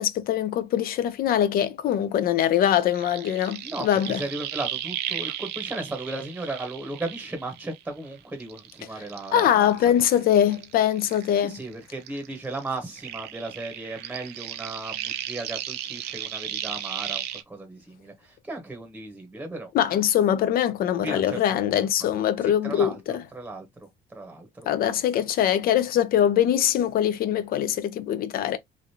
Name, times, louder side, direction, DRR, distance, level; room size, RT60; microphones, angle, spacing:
voice 1, 0.0-4.2 9.3-11.6 19.7-22.9 24.7-28.6, left 10 dB, 60° left, 0.5 m, -22 dB
sound 1, 2.5-8.0 8.4-11.7 12.0-17.4, right 11 dB, 75° right, 0.5 m, -35 dB
voice 2, 3.6-10.2 11.4-19.7 21.0-21.7 22.0-22.1 22.4-24.7, right 2 dB, 10° right, 0.9 m, -36 dB
3.2 x 2.4 x 2.7 m
cardioid pair, 110°, 17 cm